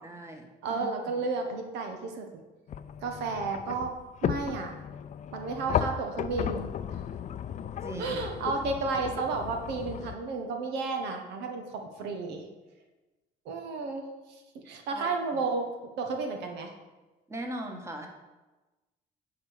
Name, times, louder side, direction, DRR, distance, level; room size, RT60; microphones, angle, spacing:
voice 1, 0.0-1.2 7.8-8.2 14.9-15.1 17.3-18.1, right 1 dB, 15° right, 3 dB, 1.5 m, -39 dB
voice 2, 0.6-2.3 3.0-3.9 4.2-4.7 5.3-7.0 8.0-12.4 13.4-15.7 16.0-16.7, right 4 dB, 85° right, 4 dB, 1.4 m, -32 dB
sound 1, 2.7-10.2, left 9 dB, 45° left, 0.5 m, -35 dB
9.9 x 4.7 x 6.6 m, 1.1 s
cardioid pair, 110°, 17 cm